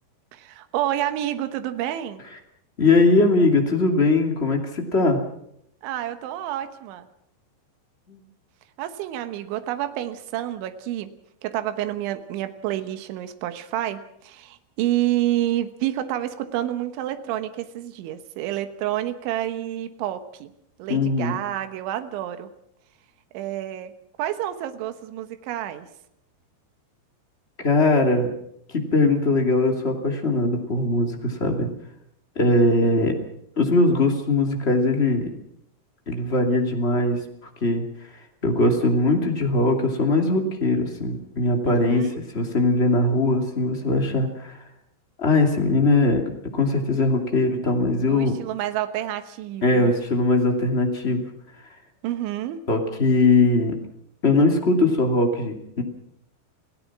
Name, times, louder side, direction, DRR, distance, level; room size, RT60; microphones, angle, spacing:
voice 1, 0.3-2.2 5.8-7.1 8.8-11.1 11.4-20.5 20.8-22.5 23.3-23.9 24.2-25.9 41.7-42.2 48.1-49.9 52.0-52.6, right 13 dB, 85° right, 9 dB, 3.6 m, -29 dB
voice 2, 2.8-5.2 8.1-8.2 20.9-21.4 27.6-28.3 28.7-31.7 32.4-33.1 33.6-35.3 36.1-37.2 37.6-37.8 38.4-42.0 42.3-44.6 45.2-46.2 46.5-48.3 49.6-51.3 52.7-53.7 54.2-55.8, left 2 dB, 20° left, 2 dB, 1.8 m, -20 dB
28.0 x 16.5 x 6.1 m, 0.75 s
omnidirectional pair, 5.3 m